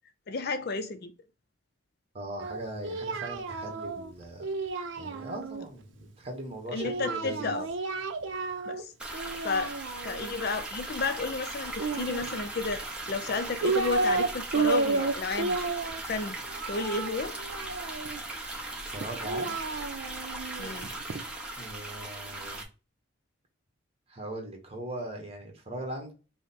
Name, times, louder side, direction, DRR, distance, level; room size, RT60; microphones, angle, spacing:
voice 1, 0.3-1.1 6.7-7.7 8.7-8.9 9.4-9.7 10.0-15.7 16.0-16.4 16.7-17.4 20.6-20.9, left 4 dB, 50° left, 0.4 m, -32 dB
voice 2, 2.1-4.5 5.0-7.6 18.9-19.6 21.6-22.6 24.1-26.1, right 1 dB, 30° right, 1.3 m, -39 dB
Singing, 2.4-5.7 6.8-8.8 9.1-10.3 11.7-12.7 13.3-14.3 14.5-18.2 19.0-21.2, right 3 dB, 70° right, 0.6 m, -32 dB
sound 1, 9.0-22.6, right 2 dB, 5° right, 0.8 m, -39 dB
5.1 x 2.1 x 4.1 m
head